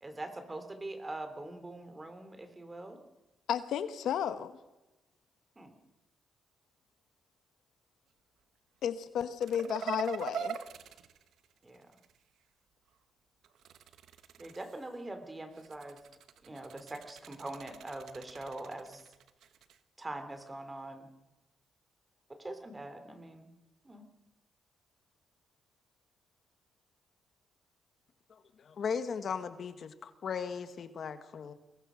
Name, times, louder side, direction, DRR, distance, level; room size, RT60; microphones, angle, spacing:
voice 1, 0.0-3.0 5.6-5.8 11.6-11.8 14.4-16.0 16.4-19.0 20.0-21.1 22.4-23.5 23.8-24.0, right 2 dB, 20° right, 9 dB, 3.2 m, -43 dB
voice 2, 3.5-4.6 8.8-10.6, left 9 dB, 80° left, 11 dB, 1.1 m, -33 dB
sound 1, 9.4-12.2 13.4-15.0 15.5-19.8, right 8 dB, 80° right, 1.1 m, -43 dB
voice 3, 28.3-31.5, left 6 dB, 55° left, 10 dB, 1.5 m, -37 dB
23.5 x 19.0 x 6.3 m, 1.1 s
cardioid pair, 95°, 0 cm